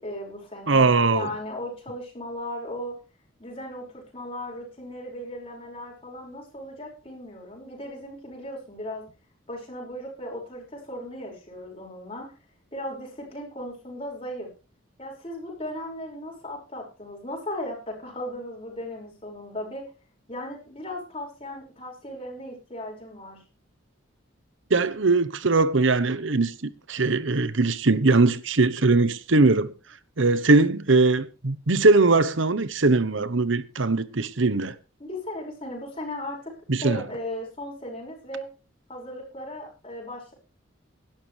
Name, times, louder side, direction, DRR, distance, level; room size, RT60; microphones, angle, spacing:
voice 1, 0.0-3.0 3.4-9.0 9.5-12.3 12.7-14.5 15.0-19.9 20.3-23.4 35.0-36.5 36.8-38.5 38.9-40.3, left 1 dB, 30° left, 5.7 m, -36 dB
voice 2, 0.7-1.3 24.7-29.7 30.2-34.7 36.7-37.0, right 3 dB, 70° right, 1.0 m, -21 dB
18.0 x 11.5 x 3.4 m
head